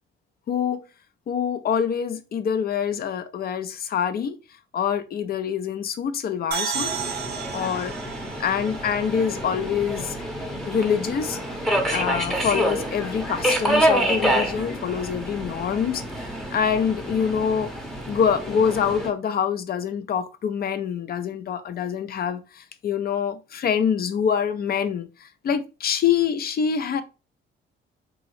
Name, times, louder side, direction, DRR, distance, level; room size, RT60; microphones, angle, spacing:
voice 1, 0.5-0.8 1.3-4.4 4.7-6.9 7.5-7.9 8.4-10.3 10.7-11.4 11.9-17.7 18.1-27.0, left 7 dB, 50° left, 0.5 m, -25 dB
sound 1, 6.5-10.1, right 7 dB, 55° right, 0.6 m, -33 dB
Subway metro underground, 6.7-19.1, right 1 dB, ahead, 0.8 m, -27 dB
3.6 x 2.0 x 3.0 m
cardioid pair, 90°, 20 cm